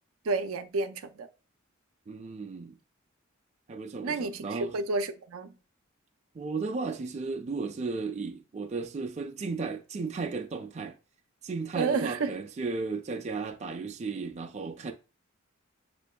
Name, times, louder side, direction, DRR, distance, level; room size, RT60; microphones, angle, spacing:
voice 1, 0.2-1.3 4.0-5.5 11.7-12.3, right 3 dB, 90° right, 0.5 m, -30 dB
voice 2, 2.1-2.8 3.7-4.7 6.3-11.0 11.4-14.9, right 4 dB, 35° right, 0.4 m, -34 dB
7.2 x 2.6 x 2.2 m
head